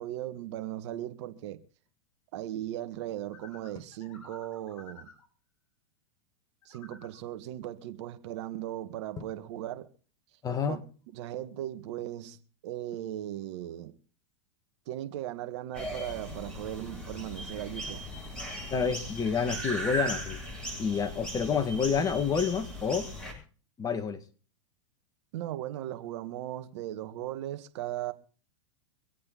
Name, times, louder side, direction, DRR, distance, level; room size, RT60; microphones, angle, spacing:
voice 1, 0.0-1.6 2.3-5.1 6.7-9.9 10.7-10.8 11.1-12.4 12.6-14.0 14.9-18.0 25.3-28.1, right 13 dB, 60° right, 1.8 m, -37 dB
sound 1, 3.3-5.3 6.6-7.2, left 5 dB, 55° left, 7.8 m, -52 dB
voice 2, 10.4-10.8 18.7-20.4 20.8-23.1 23.8-24.2, left 6 dB, 20° left, 2.0 m, -29 dB
sound 2, 15.7-23.3, right 1 dB, 5° left, 8.0 m, -38 dB
25.0 x 8.6 x 4.2 m
hypercardioid pair, 110°, 17 cm